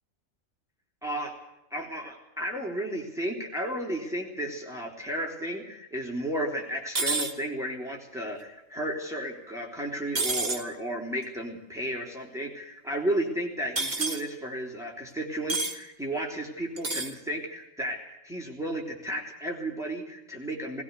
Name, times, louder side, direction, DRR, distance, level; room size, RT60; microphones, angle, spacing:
voice 1, 1.0-1.4 1.7-20.8, right 1 dB, ahead, -1 dB, 3.4 m, -33 dB
sound 1, 6.9-7.3 10.1-10.6 13.8-14.2 15.5-15.8 16.8-17.1, right 3 dB, 45° right, 2.0 m, -28 dB
19.5 x 18.0 x 8.2 m, 0.89 s
omnidirectional pair, 1.4 m